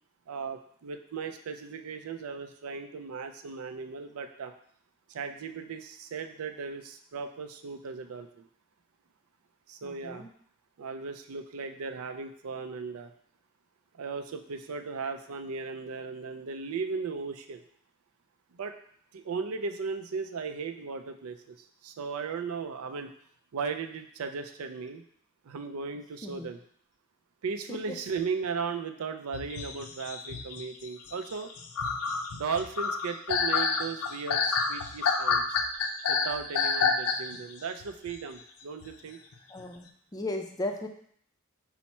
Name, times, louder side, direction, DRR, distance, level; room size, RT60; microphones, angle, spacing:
voice 1, 0.3-4.5 5.1-8.5 9.7-10.3 10.8-13.1 14.0-17.6 18.5-18.8 19.1-23.1 23.5-25.0 25.4-26.6 27.4-31.5 32.3-35.6 36.1-39.2, right 5 dB, 75° right, 7 dB, 0.4 m, -36 dB
voice 2, 9.8-10.3 26.2-26.5 27.7-27.8 39.5-39.9 40.1-40.9, left 1 dB, 20° left, 3 dB, 0.4 m, -35 dB
sound 1, 29.3-37.5 37.8-38.2 38.8-38.9 39.3-39.6, left 5 dB, 75° left, 0.5 m, -29 dB
5.7 x 2.1 x 4.2 m, 0.63 s
head